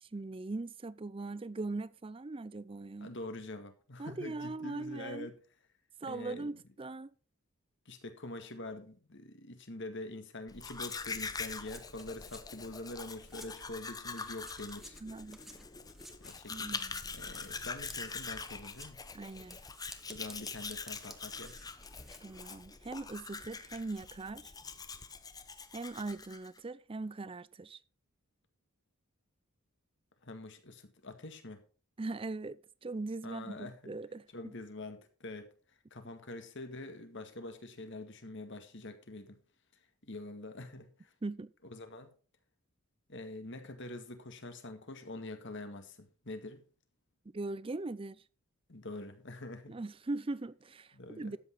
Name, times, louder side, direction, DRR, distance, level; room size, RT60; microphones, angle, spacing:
voice 1, 0.0-3.1 4.0-5.3 6.0-7.1 15.0-15.6 16.5-17.0 19.1-19.6 22.2-24.5 25.7-27.8 32.0-34.5 41.2-41.5 47.3-48.2 49.7-51.4, right 2 dB, 25° right, 0.4 m, -40 dB
voice 2, 3.0-5.4 6.0-6.6 7.9-15.0 16.2-16.8 17.1-19.0 20.1-21.6 30.2-31.6 33.2-34.0 34.3-39.4 40.0-41.1 41.6-42.1 43.1-46.6 48.7-49.8 50.9-51.4, left 2 dB, 55° left, 1.9 m, -45 dB
Domestic sounds home sounds, 10.5-26.6, left 4 dB, 15° left, 0.7 m, -44 dB
sound 1, 11.4-13.8 14.1-22.5, equal, ahead, 1.0 m, -55 dB
12.5 x 8.4 x 4.6 m
head